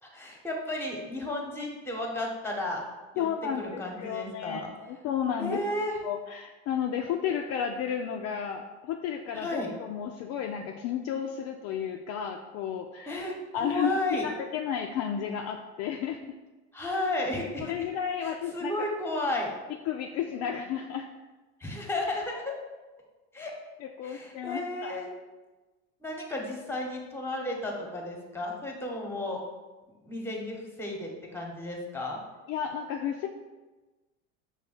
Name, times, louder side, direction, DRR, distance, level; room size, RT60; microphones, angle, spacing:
voice 1, 0.0-2.8 3.1-3.3 3.6-4.7 5.4-6.0 9.3-9.7 13.1-14.3 16.7-17.7 18.2-19.5 21.6-22.5 23.3-23.5 24.0-25.1 26.0-29.4 30.0-32.2, left 1 dB, 5° left, 0 dB, 1.0 m, -33 dB
voice 2, 3.2-5.6 6.0-13.2 13.5-13.9 14.2-16.2 17.6-18.9 19.9-21.1 23.8-25.0 32.5-33.3, left 8 dB, 45° left, 3 dB, 0.4 m, -32 dB
5.4 x 2.3 x 4.1 m, 1.2 s
hypercardioid pair, 80°, 35 cm